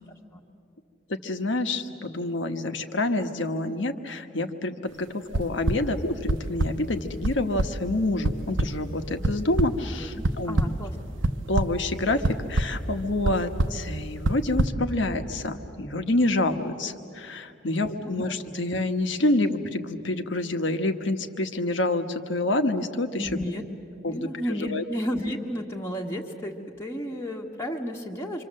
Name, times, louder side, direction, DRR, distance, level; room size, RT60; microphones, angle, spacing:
voice 1, 1.1-10.7 11.2-23.3 24.0-24.8, left 2 dB, 70° left, 7 dB, 1.4 m, -27 dB
sound 1, 5.3-5.8 6.3-6.7 7.2-7.3 7.6-7.7 8.2-8.3 8.6-8.7 9.2-9.7 10.2-10.7 11.2-11.7 12.2-12.6 13.2-13.3 13.6-13.8 14.2-14.7, right 2 dB, 75° right, 1.0 m, -22 dB
voice 2, 10.0-11.0 17.6-18.1 23.2-23.6 24.1-28.4, equal, 15° left, -1 dB, 1.5 m, -33 dB
26.5 x 25.5 x 7.6 m, 2.6 s
head